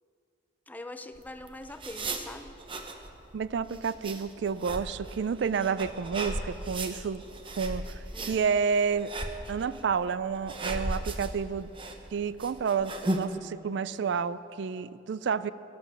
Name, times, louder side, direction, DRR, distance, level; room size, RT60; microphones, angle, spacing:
voice 1, 0.7-2.6 8.1-8.4, left 2 dB, 10° left, 9 dB, 0.5 m, -43 dB
sound 1, 1.2-13.2, right 1 dB, 25° right, 0.9 m, -37 dB
voice 2, 3.3-7.2 7.6-9.1 9.5-11.7 12.1-15.5, right 6 dB, 65° right, 16 dB, 0.4 m, -30 dB
12.5 x 11.0 x 7.1 m, 2.9 s
head